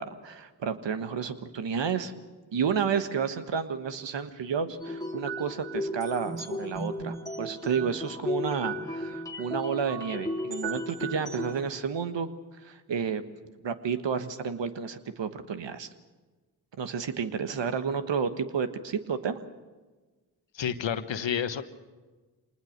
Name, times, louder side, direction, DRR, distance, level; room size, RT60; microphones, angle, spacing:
voice 1, 0.0-2.1 2.5-12.3 12.6-13.2 13.6-15.9 16.8-19.4, right 6 dB, 70° right, 10 dB, 1.4 m, -31 dB
sound 1, 4.8-11.6, equal, 5° left, 2.9 m, -34 dB
voice 2, 20.5-21.6, left 8 dB, 75° left, 11 dB, 1.3 m, -30 dB
24.5 x 19.5 x 6.6 m, 1.3 s
supercardioid pair, 45°, 45 cm